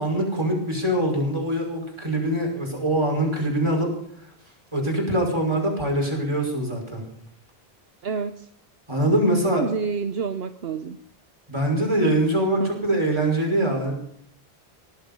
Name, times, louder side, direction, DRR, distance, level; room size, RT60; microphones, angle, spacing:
voice 1, 0.0-3.9 4.7-7.0 8.9-9.6 11.5-13.9, right 1 dB, 25° right, 0 dB, 5.6 m, -23 dB
voice 2, 8.0-8.5 9.5-11.0 12.6-12.8, right 5 dB, 75° right, 9 dB, 1.0 m, -28 dB
19.0 x 12.0 x 5.4 m, 0.65 s
omnidirectional pair, 1.0 m